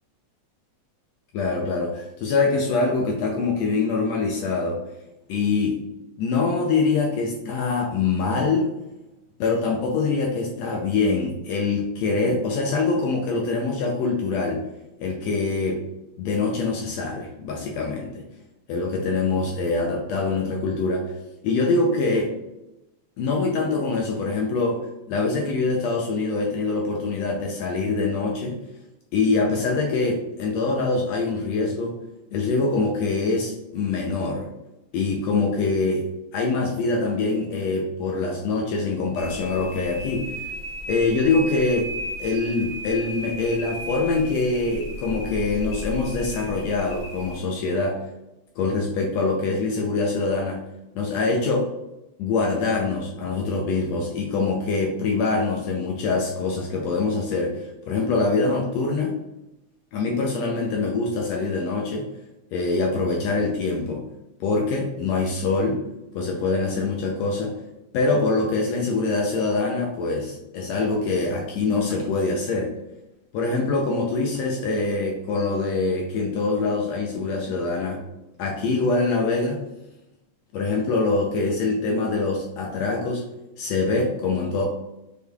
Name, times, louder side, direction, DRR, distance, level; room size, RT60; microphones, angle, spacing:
voice 1, 1.3-4.8 5.3-5.8 6.2-8.7 9.4-14.6 15.0-15.8 16.2-18.2 18.7-21.1 21.4-22.3 23.2-24.8 25.1-28.6 29.1-31.9 32.3-34.5 34.9-40.5 40.9-41.9 42.2-48.0 48.6-50.6 50.9-51.7 52.2-59.1 59.9-62.1 62.5-64.0 64.4-65.8 66.1-67.5 67.9-72.7 73.3-78.0 78.4-79.6 80.5-83.2 83.6-84.6, left 3 dB, 80° left, 1 dB, 1.6 m, -24 dB
sound 1, 39.1-47.4, left 1 dB, 60° left, 1.2 m, -35 dB
6.3 x 3.4 x 2.3 m, 0.93 s
omnidirectional pair, 3.4 m